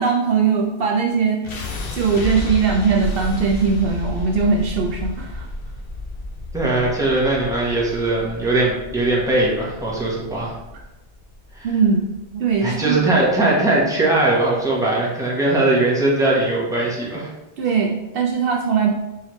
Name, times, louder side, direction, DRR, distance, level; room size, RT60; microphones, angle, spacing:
voice 1, 0.0-1.4 1.9-5.5 10.7-10.8 11.6-12.1 12.3-13.1 17.6-18.9, right 5 dB, 65° right, 0 dB, 0.7 m, -20 dB
sound 1, 1.4-13.5, left 2 dB, 65° left, 0.9 m, -32 dB
voice 2, 6.5-10.5 11.5-11.7 12.6-17.3, right 2 dB, 5° right, -5 dB, 1.0 m, -20 dB
4.6 x 3.2 x 3.1 m, 0.98 s
omnidirectional pair, 1.1 m